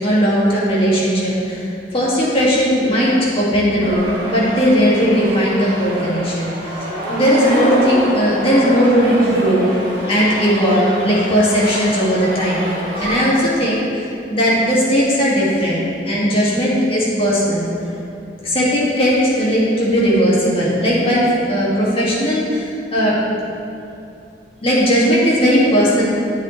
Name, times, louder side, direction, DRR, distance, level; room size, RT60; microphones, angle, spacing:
voice 1, 0.0-9.7 10.0-17.7 18.4-23.1 24.6-26.0, equal, 35° left, -7 dB, 2.2 m, -17 dB
sound 1, 3.8-13.1, equal, 55° right, 1.9 m, -27 dB
9.5 x 8.1 x 3.3 m, 2.6 s
head